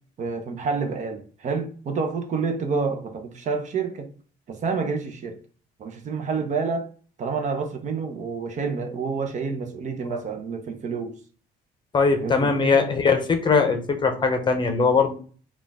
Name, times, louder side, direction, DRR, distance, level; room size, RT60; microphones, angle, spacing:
voice 1, 0.2-4.1 4.5-5.4 5.8-6.9 7.2-11.2 12.2-12.9, right 4 dB, 45° right, 0.7 m, -28 dB
voice 2, 11.9-15.1, left 4 dB, 25° left, 0.7 m, -21 dB
4.2 x 2.4 x 3.5 m
cardioid pair, 110°, 17 cm